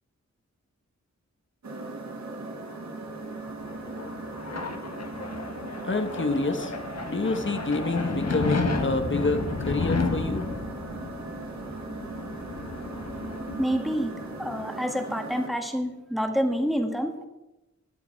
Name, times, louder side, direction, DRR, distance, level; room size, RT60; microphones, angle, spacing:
sound 1, 1.6-15.5, right 2 dB, 70° right, 2.0 m, -38 dB
sound 2, 3.3-14.6, left 3 dB, 60° left, 1.7 m, -32 dB
voice 1, 5.8-6.7 7.0-10.5, left 3 dB, 40° left, 7 dB, 1.5 m, -27 dB
voice 2, 13.6-14.1 14.4-17.3, equal, ahead, 3 dB, 2.0 m, -27 dB
20.0 x 7.2 x 4.7 m, 1.0 s
wide cardioid pair, 60°, 29 cm